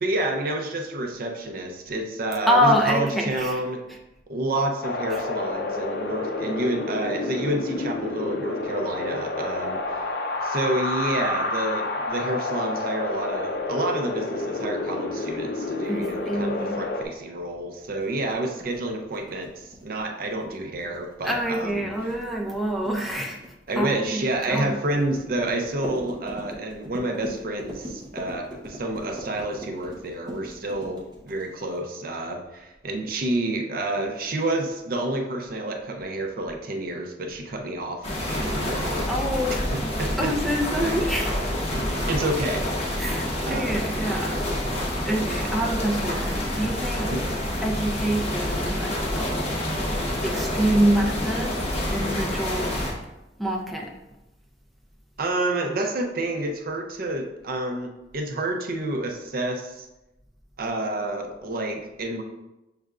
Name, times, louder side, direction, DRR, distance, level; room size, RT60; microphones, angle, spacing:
voice 1, 0.0-3.8 4.3-10.0 10.4-21.9 23.7-39.1 39.7-40.3 41.7-42.7 43.4-43.7 47.1-47.3 55.2-59.9 60.6-62.2, right 1 dB, 55° right, 4 dB, 0.5 m, -29 dB
voice 2, 2.5-3.6 3.9-4.0 5.1-5.2 15.9-16.8 21.2-23.4 23.7-24.8 39.1-39.6 40.2-41.7 43.0-44.3 45.0-47.2 47.6-49.0 50.2-51.6 51.9-52.7 53.4-53.9, equal, ahead, -1 dB, 0.5 m, -26 dB
Wind, 4.8-17.0, left 2 dB, 60° left, 0.4 m, -29 dB
sound 1, 18.0-31.7, equal, 25° right, 0.8 m, -40 dB
sound 2, 38.0-52.9, left 1 dB, 35° left, 0.9 m, -27 dB
6.3 x 3.3 x 2.4 m, 0.97 s
head